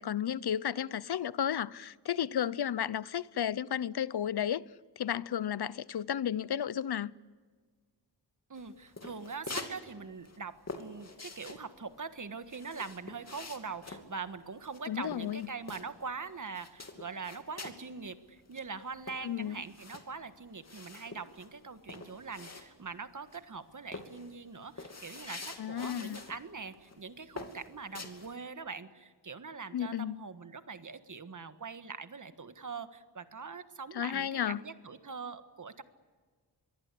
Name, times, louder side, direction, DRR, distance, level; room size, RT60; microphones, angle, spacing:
voice 1, 0.0-4.6 5.0-7.1 14.9-15.5 19.2-19.6 25.6-26.2 29.7-30.2 33.9-34.6, left 9 dB, 65° left, 0.7 m, -33 dB
voice 2, 8.5-35.8, right 5 dB, 45° right, 1.6 m, -43 dB
sound 1, 8.6-9.8 10.0-16.2 16.5-17.9 18.2-18.3 18.5-23.0 23.3-23.6 23.9-26.4 26.7-27.0 27.4-28.3, left 3 dB, 40° left, 2.8 m, -46 dB
25.5 x 23.0 x 8.5 m
wide cardioid pair, 115°, 41 cm